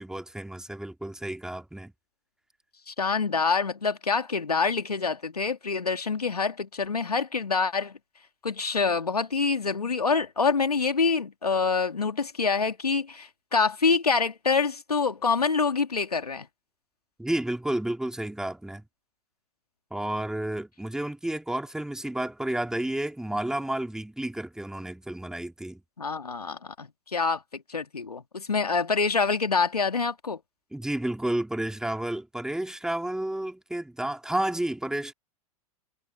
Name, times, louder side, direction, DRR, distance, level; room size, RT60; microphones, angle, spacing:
voice 1, 0.0-1.9 17.2-18.8 19.9-25.8 30.7-35.1, right 1 dB, 5° right, 3.1 m, -31 dB
voice 2, 2.9-8.0 8.4-16.5 26.0-30.4, left 4 dB, 85° left, 2.3 m, -26 dB
figure-of-eight pair, 100°, 19 cm